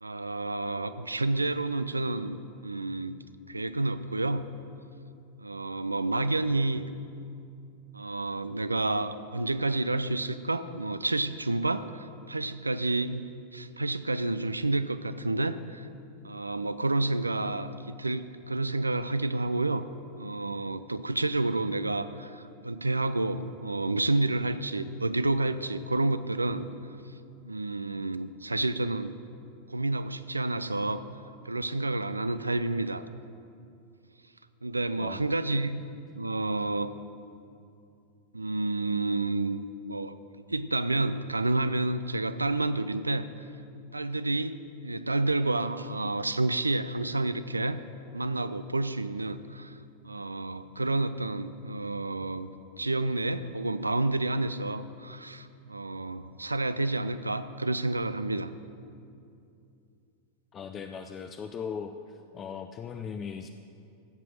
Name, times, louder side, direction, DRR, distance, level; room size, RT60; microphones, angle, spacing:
voice 1, 0.0-3.1 3.5-4.5 5.4-6.8 7.9-13.2 13.5-15.9 16.2-19.9 20.2-26.7 27.4-29.2 29.7-31.0 31.4-33.1 34.6-35.8 36.1-36.9 38.3-40.1 40.5-43.3 43.9-47.8 48.1-49.8 50.0-52.5 52.8-58.5, right 2 dB, 80° right, 13 dB, 0.5 m, -29 dB
voice 2, 60.5-63.5, left 6 dB, 25° left, 7 dB, 0.5 m, -39 dB
15.0 x 7.6 x 6.3 m, 2.6 s
figure-of-eight pair, 90°, 0 cm